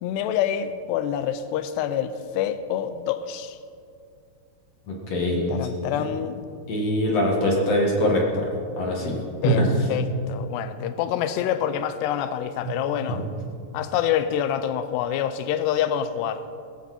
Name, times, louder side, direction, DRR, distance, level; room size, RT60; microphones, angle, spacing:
voice 1, 0.0-3.6 5.5-6.4 8.9-9.6 9.9-13.2 13.7-16.4, left 10 dB, 90° left, 12 dB, 2.7 m, -27 dB
voice 2, 4.9-6.0 6.7-8.5 8.8-9.6 12.6-12.7, equal, 50° left, -1 dB, 2.5 m, -23 dB
17.5 x 15.0 x 4.3 m, 2.4 s
omnidirectional pair, 4.8 m